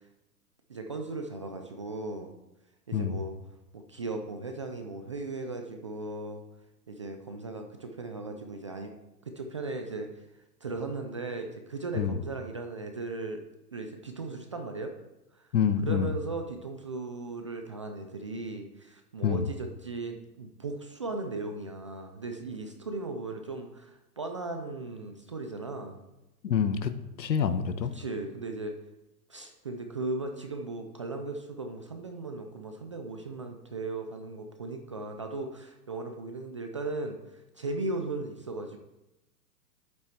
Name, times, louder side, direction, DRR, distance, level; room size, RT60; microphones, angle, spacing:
voice 1, 0.7-2.3 2.9-3.3 3.7-6.4 6.9-8.9 9.3-10.1 10.6-13.4 13.7-14.9 15.4-15.5 15.8-26.0 28.0-28.7 29.3-38.8, right 3 dB, 20° right, 5 dB, 0.3 m, -37 dB
voice 2, 15.5-16.1 19.2-19.5 26.4-26.9 27.2-27.9, left 7 dB, 80° left, 11 dB, 1.3 m, -27 dB
11.0 x 8.4 x 4.5 m, 0.95 s
hypercardioid pair, 130°, 50 cm